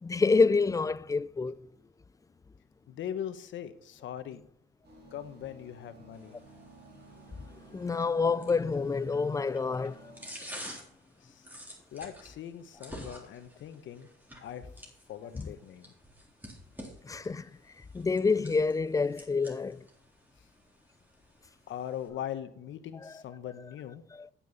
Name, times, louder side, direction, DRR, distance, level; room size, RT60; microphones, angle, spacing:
voice 1, 0.0-1.6 7.7-10.2 17.0-17.5 17.9-19.8, left 4 dB, 15° left, 0.4 m, -27 dB
voice 2, 2.9-4.4 5.1-6.4 10.7-10.8 11.2-11.5 11.9-14.1 14.4-14.7 15.1-15.9 21.7-24.0, left 10 dB, 75° left, 1.1 m, -40 dB
sound 1, 4.8-10.3, right 3 dB, 60° right, 4.3 m, -54 dB
sound 2, 6.1-22.1, equal, 10° right, 3.7 m, -50 dB
8.9 x 8.7 x 4.1 m
cardioid pair, 90°, 20 cm